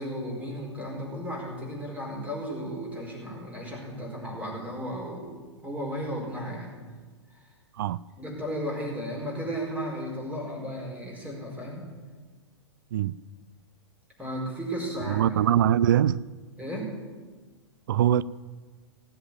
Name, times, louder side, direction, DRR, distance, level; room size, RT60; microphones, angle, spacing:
voice 1, 0.0-5.4 5.6-6.7 8.2-11.9 14.2-15.3 16.6-16.9, equal, 10° right, 4.8 m, -34 dB
voice 2, 15.1-16.2 17.9-18.2, right 11 dB, 45° right, 0.4 m, -22 dB
17.5 x 7.9 x 7.3 m
figure-of-eight pair, 105°, 15 cm